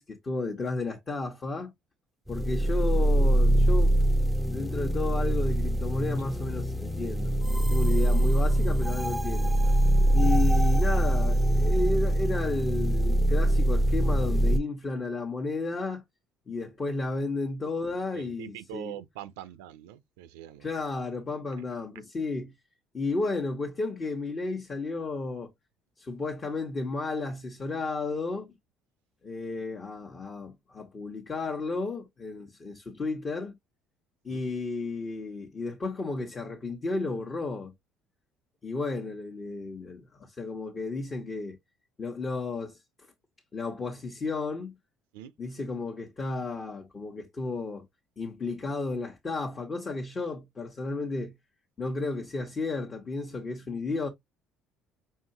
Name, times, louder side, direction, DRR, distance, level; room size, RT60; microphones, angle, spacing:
voice 1, 0.0-1.7 2.3-3.9 4.4-7.3 7.7-9.5 10.1-16.0 16.5-18.9 20.6-22.5 22.9-25.5 26.0-28.6 29.2-33.6 34.2-37.7 38.6-41.6 42.0-42.8 43.5-44.7 45.4-47.8 48.2-51.3 51.8-54.1, left 3 dB, 35° left, 1.1 m, -33 dB
sound 1, 2.3-14.6, right 1 dB, ahead, 0.5 m, -23 dB
voice 2, 18.1-20.7 34.3-34.4 45.1-45.3, right 12 dB, 90° right, 0.4 m, -43 dB
5.6 x 2.7 x 2.8 m
supercardioid pair, 75°, 0 cm